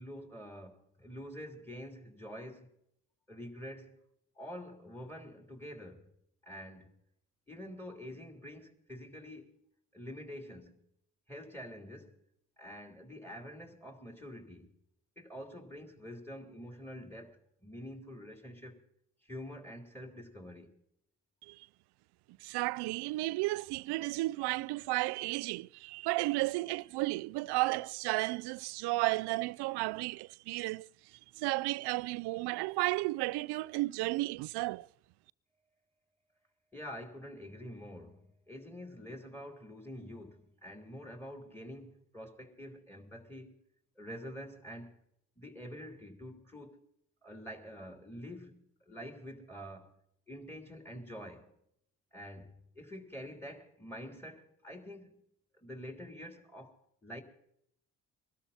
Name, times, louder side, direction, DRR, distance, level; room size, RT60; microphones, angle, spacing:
voice 1, 0.0-2.7 3.3-4.0 4.3-6.1 6.4-6.9 7.5-9.6 9.9-10.8 11.3-12.2 12.6-14.7 15.2-18.8 19.2-20.7 36.7-43.6 44.0-44.9 45.4-46.8 47.2-50.0 50.3-51.5 52.1-55.2 55.5-57.2, equal, 5° left, 3.4 m, -47 dB
voice 2, 22.4-30.9 31.4-34.9, right 20 dB, 80° right, 0.5 m, -33 dB
22.5 x 13.0 x 4.2 m
supercardioid pair, 60°, 39 cm